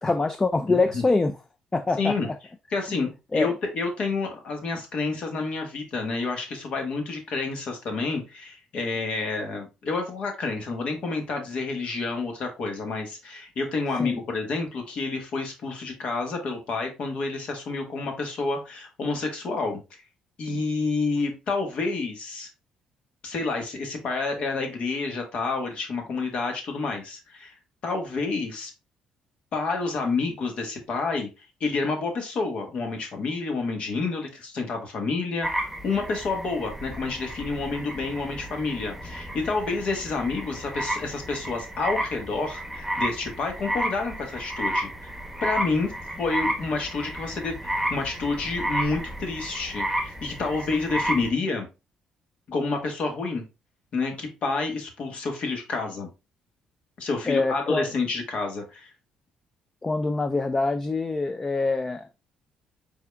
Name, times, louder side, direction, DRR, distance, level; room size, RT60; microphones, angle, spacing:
voice 1, 0.0-1.4 1.7-2.3 3.3-3.5 14.0-14.2 57.3-57.9 59.8-62.1, left 3 dB, 20° left, 0.4 m, -25 dB
voice 2, 0.7-1.0 2.0-2.3 2.7-19.8 20.4-22.5 23.2-27.5 27.8-28.7 29.5-45.1 45.4-45.9 46.2-51.7 52.5-53.4 53.9-56.1 57.0-58.9, left 3 dB, 60° left, 1.3 m, -29 dB
sound 1, 35.4-51.3, right 1 dB, ahead, 1.1 m, -32 dB
4.8 x 3.7 x 2.2 m
supercardioid pair, 70°, 2 cm